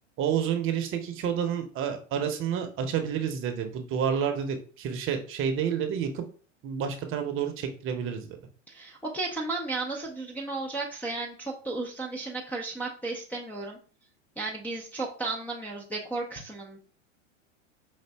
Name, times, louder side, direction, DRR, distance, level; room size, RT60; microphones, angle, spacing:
voice 1, 0.2-6.2 6.6-8.4, right 8 dB, 35° right, 6 dB, 0.8 m, -29 dB
voice 2, 8.7-13.8 14.4-16.8, right 3 dB, 5° left, -4 dB, 0.5 m, -34 dB
5.1 x 2.6 x 3.4 m, 0.41 s
hypercardioid pair, 105°, 37 cm